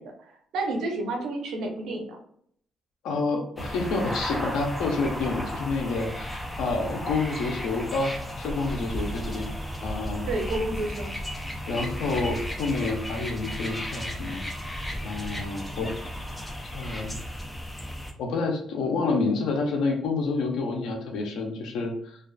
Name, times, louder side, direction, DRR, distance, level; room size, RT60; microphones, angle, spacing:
voice 1, 0.0-2.2 10.3-11.1, right 2 dB, 80° right, 2 dB, 0.6 m, -30 dB
voice 2, 3.0-6.3 6.6-9.5 9.8-10.3 11.7-14.5 15.0-15.9 16.7-17.2 18.2-22.2, left 3 dB, 85° left, 2 dB, 0.5 m, -28 dB
sound 1, 3.6-18.1, equal, 10° left, 0.5 m, -34 dB
2.3 x 2.3 x 2.3 m, 0.64 s
cardioid pair, 90°, 0 cm